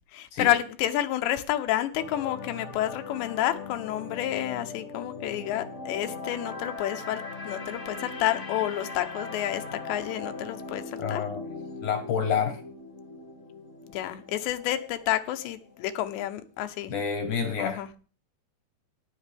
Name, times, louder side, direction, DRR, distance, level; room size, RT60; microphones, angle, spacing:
voice 1, 0.1-11.2 13.9-16.9 17.6-17.9, left 13 dB, 85° left, 3.1 m, -29 dB
sound 1, 1.9-16.1 16.4-16.6, left 3 dB, 30° left, 1.3 m, -40 dB
voice 2, 11.0-12.6 16.9-17.9, left 6 dB, 60° left, 2.3 m, -29 dB
15.0 x 10.5 x 3.5 m
omnidirectional pair, 5.0 m